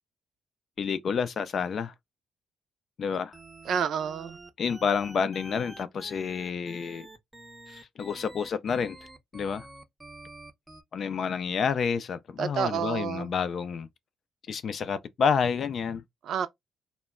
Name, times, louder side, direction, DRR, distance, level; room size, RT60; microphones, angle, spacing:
voice 1, 0.8-1.9 3.0-3.4 4.6-7.1 7.7-9.0 9.3-9.7 10.9-13.9 14.5-16.0, left 6 dB, 55° left, 0.4 m, -29 dB
sound 1, 3.1-10.8, right 2 dB, 15° right, 0.6 m, -48 dB
voice 2, 3.7-4.4 12.4-13.3 16.2-16.5, right 8 dB, 70° right, 0.4 m, -29 dB
2.2 x 2.0 x 3.5 m
cardioid pair, 90°, 0 cm